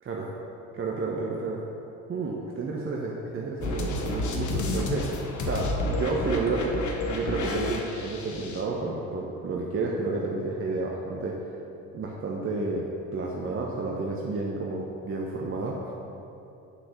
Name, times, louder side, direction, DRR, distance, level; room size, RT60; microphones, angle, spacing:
voice 1, 0.0-0.3 0.7-1.6 2.1-6.7 7.1-11.4 11.9-12.8 13.1-15.9, right 3 dB, 35° right, -2 dB, 1.2 m, -31 dB
sound 1, 3.6-8.6, left 2 dB, 50° left, 1.2 m, -30 dB
8.2 x 6.0 x 6.2 m, 2.8 s
hypercardioid pair, 55°, 36 cm